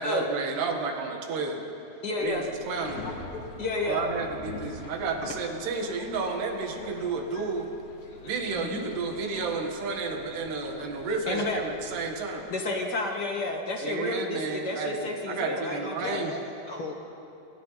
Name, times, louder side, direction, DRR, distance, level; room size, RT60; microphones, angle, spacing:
voice 1, 0.0-1.6 2.2-3.1 3.9-7.7 8.2-12.5 13.8-16.3, right 4 dB, 80° right, 3 dB, 3.9 m, -31 dB
voice 2, 2.0-2.5 3.6-4.1 8.5-8.9 11.3-11.6 12.5-16.2, left 2 dB, 40° left, 1 dB, 1.6 m, -31 dB
Subway metro underground, 2.2-12.3, left 2 dB, 85° left, 4.8 m, -43 dB
voice 3, 16.0-16.9, left 3 dB, 65° left, 0 dB, 1.2 m, -37 dB
27.5 x 27.0 x 4.2 m, 2.8 s
omnidirectional pair, 4.7 m